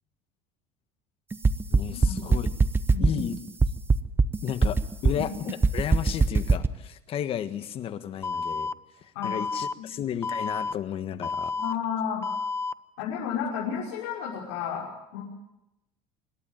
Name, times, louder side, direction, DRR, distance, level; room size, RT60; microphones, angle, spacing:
sound 1, 1.3-6.7, right 4 dB, 15° right, 0.9 m, -21 dB
voice 1, 1.7-2.5 3.0-3.4 4.4-4.8 5.0-8.7 9.0-11.5, left 9 dB, 45° left, 11 dB, 1.5 m, -33 dB
voice 2, 2.9-3.2 5.1-5.3 9.1-9.3 9.8-10.0 11.6-12.2 13.0-15.2, left 7 dB, 80° left, -5 dB, 5.9 m, -32 dB
Alarm, 8.2-8.7 9.2-9.7 10.2-10.7 11.2-11.7 12.2-12.7, left 4 dB, 20° left, 0.7 m, -30 dB
26.0 x 12.0 x 9.2 m, 0.89 s
supercardioid pair, 115°, 13 cm